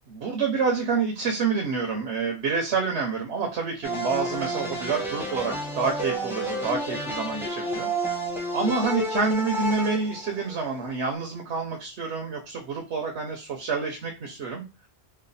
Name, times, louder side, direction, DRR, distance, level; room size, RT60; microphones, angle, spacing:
voice 1, 0.1-7.9 8.5-14.6, right 4 dB, 75° right, 2 dB, 0.9 m, -28 dB
sound 1, 3.8-10.8, right 1 dB, ahead, 0.7 m, -30 dB
3.1 x 2.3 x 3.9 m, 0.28 s
omnidirectional pair, 1.2 m